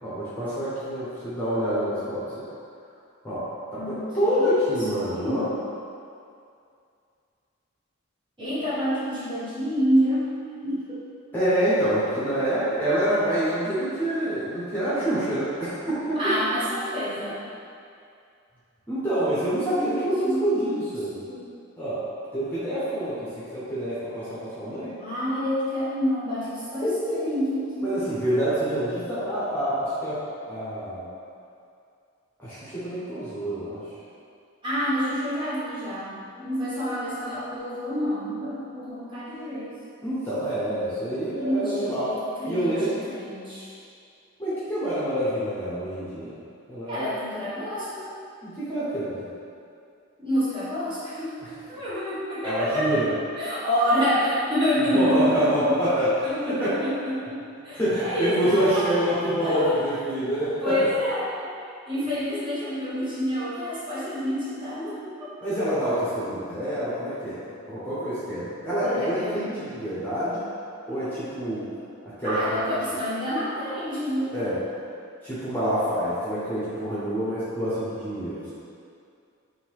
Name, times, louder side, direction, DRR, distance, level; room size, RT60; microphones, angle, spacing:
voice 1, 0.0-2.5 3.2-3.5 3.7-5.4 11.3-16.3 18.9-21.2 21.8-22.0 22.3-25.0 26.8-27.2 27.8-30.2 30.5-31.1 32.4-33.8 40.0-42.1 42.5-42.9 44.4-46.4 46.7-47.1 48.4-49.2 51.4-51.5 52.4-53.1 54.9-56.7 57.7-60.8 65.4-67.4 67.7-70.4 70.9-71.7 72.0-72.6 74.3-74.6 75.2-78.5, equal, 10° left, -12 dB, 1.0 m, -26 dB
voice 2, 3.7-5.5 8.4-10.3 10.6-10.8 16.2-17.4 20.1-20.8 21.3-21.5 25.0-28.0 34.6-39.7 41.4-43.8 46.9-48.1 50.2-51.4 51.7-53.0 53.3-55.8 56.3-59.7 60.6-61.4 61.9-65.0 68.7-69.7 72.2-74.3, equal, 25° right, -12 dB, 1.1 m, -28 dB
3.8 x 2.7 x 4.7 m, 2.4 s
head